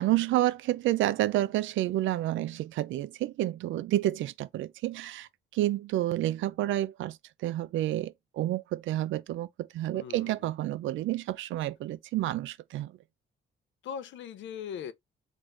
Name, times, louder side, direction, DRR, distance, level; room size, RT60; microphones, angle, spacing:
voice 1, 0.0-7.2 7.4-12.9, right 14 dB, 75° right, 0.4 m, -29 dB
voice 2, 9.9-10.4 13.8-14.9, left 8 dB, 70° left, 0.5 m, -39 dB
3.4 x 2.5 x 3.1 m
cardioid pair, 90°, 20 cm